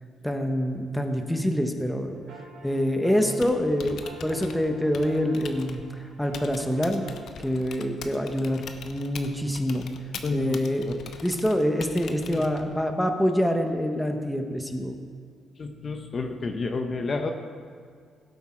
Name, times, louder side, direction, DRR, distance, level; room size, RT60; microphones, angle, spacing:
voice 1, 0.2-2.2 2.6-5.8 6.2-7.0 7.4-9.9 10.3-10.8 11.2-14.9, equal, 5° left, 5 dB, 1.2 m, -26 dB
sound 1, 2.1-7.1, right 2 dB, 90° right, 2.5 m, -47 dB
Typing, 3.3-12.8, left 6 dB, 70° left, 0.9 m, -43 dB
voice 2, 10.2-11.0 12.3-12.5 15.6-17.3, left 3 dB, 40° left, 6 dB, 0.8 m, -30 dB
16.5 x 8.0 x 4.5 m, 2.1 s
cardioid pair, 90°, 0 cm